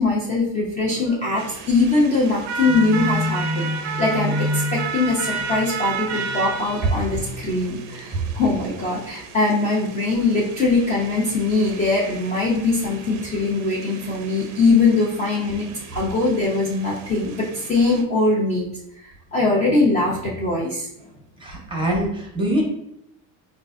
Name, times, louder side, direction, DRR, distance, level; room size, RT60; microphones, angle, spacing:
voice 1, 0.0-20.9, left 3 dB, 20° left, -5 dB, 0.4 m, -22 dB
sound 1, 1.4-18.0, right 5 dB, 50° right, 0.4 m, -34 dB
sound 2, 2.7-8.9, left 1 dB, 50° left, 0.7 m, -30 dB
voice 2, 21.4-22.6, right 1 dB, 15° right, -1 dB, 0.7 m, -23 dB
3.8 x 2.4 x 2.3 m, 0.76 s
cardioid pair, 140°, 38 cm